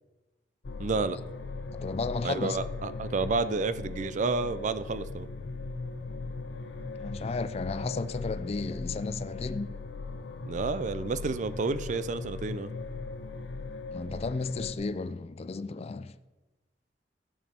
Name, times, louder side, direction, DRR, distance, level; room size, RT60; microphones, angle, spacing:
sound 1, 0.6-14.7, left 3 dB, 90° left, 0.7 m, -38 dB
voice 1, 0.8-1.2 2.2-5.3 10.5-12.7, right 4 dB, 45° right, 0.4 m, -30 dB
voice 2, 1.7-2.6 7.0-9.8 13.9-16.1, left 3 dB, 35° left, 0.4 m, -34 dB
14.0 x 7.2 x 4.3 m
head